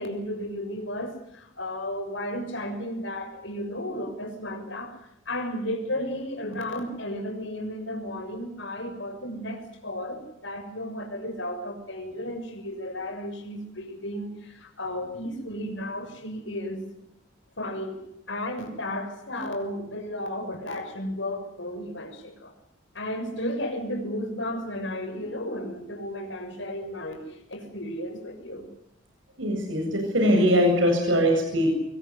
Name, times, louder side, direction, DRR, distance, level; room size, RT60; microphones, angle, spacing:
voice 1, 0.0-5.0 5.3-16.8 17.6-18.0 18.3-22.5 22.9-28.7, left 1 dB, 70° left, 6 dB, 6.5 m, -33 dB
voice 2, 29.4-31.7, equal, 75° right, 2 dB, 8.0 m, -21 dB
25.5 x 23.0 x 8.3 m, 0.78 s
head